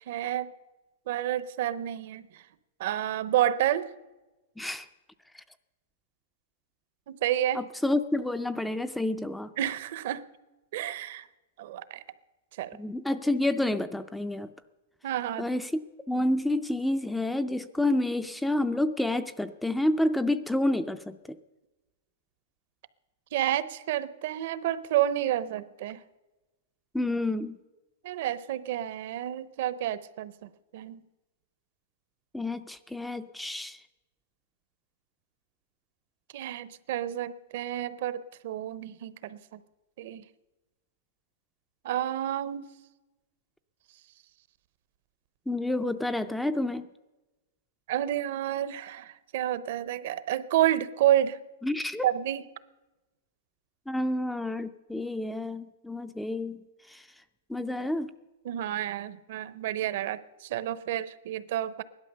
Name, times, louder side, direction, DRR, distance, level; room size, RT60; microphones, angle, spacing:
voice 1, 0.1-0.5 1.1-2.2 2.8-3.9 7.1-7.6 9.6-10.2 10.7-11.2 11.6-12.0 12.6-12.7 15.0-15.5 23.3-26.0 28.0-30.3 30.7-31.0 36.3-39.4 40.0-40.2 41.8-42.7 47.9-51.4 52.0-52.4 58.4-61.8, right 12 dB, 55° right, 16 dB, 0.7 m, -29 dB
voice 2, 4.6-4.9 7.5-9.5 12.7-14.5 15.4-15.8 16.1-21.2 26.9-27.6 32.3-33.8 45.5-46.9 51.6-52.1 53.9-57.1 57.5-58.1, left 1 dB, 5° left, 11 dB, 0.4 m, -29 dB
17.5 x 12.0 x 6.7 m, 1.1 s
supercardioid pair, 165°, 0 cm